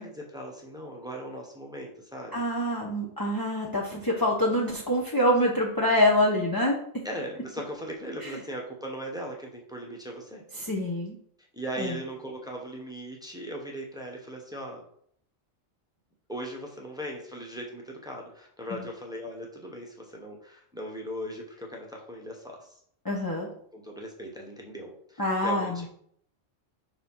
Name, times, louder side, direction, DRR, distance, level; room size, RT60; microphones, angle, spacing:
voice 1, 0.0-2.4 7.0-10.4 11.5-14.8 16.3-22.7 23.7-25.9, equal, 5° right, -1 dB, 1.2 m, -38 dB
voice 2, 2.3-6.8 8.2-8.4 10.6-11.2 11.8-11.9 23.0-23.5 25.2-25.8, left 1 dB, 20° left, -3 dB, 0.9 m, -25 dB
5.3 x 4.7 x 5.7 m, 0.65 s
omnidirectional pair, 1.4 m